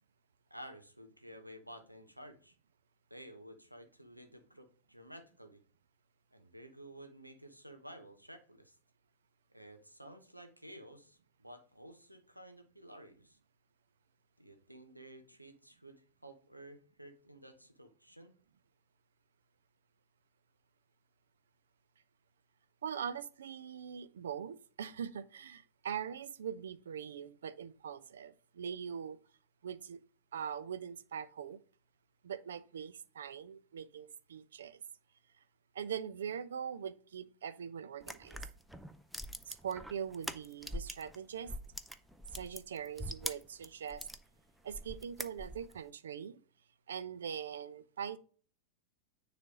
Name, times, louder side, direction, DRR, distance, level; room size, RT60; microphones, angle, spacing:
voice 1, 0.5-2.6 3.1-5.6 6.3-8.8 9.5-13.4 14.4-18.3, right 1 dB, 90° right, 1.0 m, -53 dB
voice 2, 22.8-29.2 29.6-30.0 30.3-31.6 32.2-34.8 35.7-38.4 39.5-41.5 42.3-44.1 44.6-46.4 46.9-48.2, right 8 dB, 65° right, 0.5 m, -42 dB
sound 1, 38.0-41.2 41.4-44.2 44.7-45.8, equal, ahead, 0.5 m, -43 dB
9.5 x 3.3 x 3.8 m
figure-of-eight pair, 90°, 0 cm